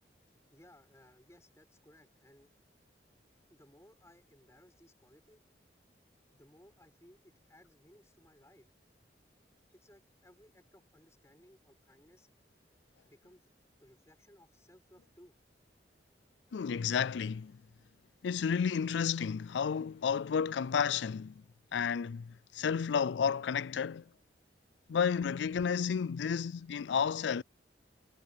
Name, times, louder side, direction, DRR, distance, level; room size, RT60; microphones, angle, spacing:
voice 1, 0.5-2.5 3.5-5.5 6.3-8.7 9.0-9.1 9.7-12.3 13.0-13.5 13.8-15.4, left 1 dB, 15° left, 6.7 m, -61 dB
voice 2, 16.5-17.6 18.2-21.4 21.7-24.0 24.9-27.4, left 6 dB, 80° left, 0.4 m, -31 dB
head